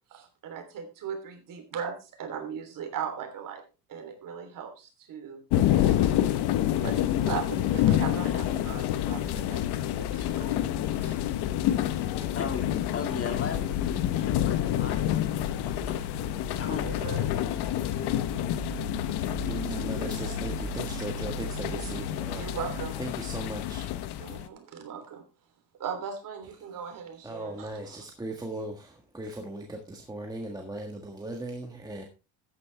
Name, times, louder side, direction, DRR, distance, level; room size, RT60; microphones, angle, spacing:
voice 1, 0.1-3.6 3.9-6.1 6.8-10.6 10.9-11.2 16.7-17.3 22.3-23.0 24.2-25.2 25.8-27.7, right 7 dB, 50° right, 6 dB, 3.4 m, -38 dB
sound 1, 5.5-24.5, left 12 dB, 70° left, 1.2 m, -28 dB
sound 2, 5.8-22.9, right 7 dB, 75° right, 4.3 m, -44 dB
voice 2, 12.3-16.0 16.6-17.0, left 6 dB, 35° left, 6 dB, 2.1 m, -38 dB
voice 3, 19.2-22.6 23.0-23.9 27.2-32.0, right 1 dB, 10° right, 1 dB, 1.5 m, -38 dB
13.5 x 9.6 x 3.4 m, 0.31 s
cardioid pair, 140°, 41 cm